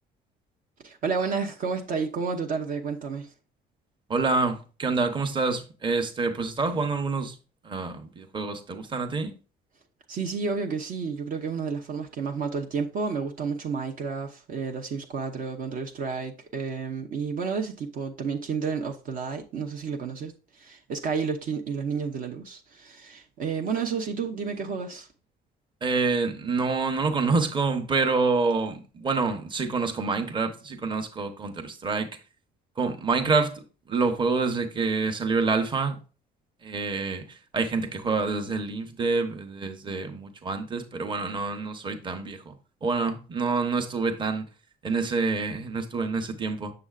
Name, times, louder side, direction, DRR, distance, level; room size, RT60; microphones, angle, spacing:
voice 1, 0.8-3.3 10.1-25.1, right 5 dB, 55° right, 0.8 m, -31 dB
voice 2, 4.1-7.4 7.6-9.3 25.8-32.1 32.8-36.0 36.6-42.6 42.8-44.5 44.8-46.7, right 4 dB, 30° right, 0.9 m, -27 dB
6.9 x 6.5 x 2.4 m
cardioid pair, 110°, 17 cm